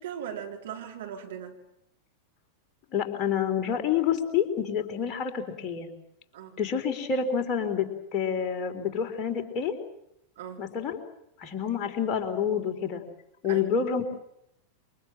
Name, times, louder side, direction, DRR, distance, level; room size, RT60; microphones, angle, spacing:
voice 1, 0.0-1.6 6.3-6.6 10.4-10.7 13.5-13.6, right 9 dB, 60° right, 2 dB, 3.9 m, -39 dB
voice 2, 2.9-5.9 6.6-9.7 10.6-11.0 11.4-13.0 13.4-14.0, left 7 dB, 30° left, 4 dB, 4.0 m, -28 dB
28.0 x 25.5 x 7.6 m, 0.78 s
figure-of-eight pair, 90°, 0 cm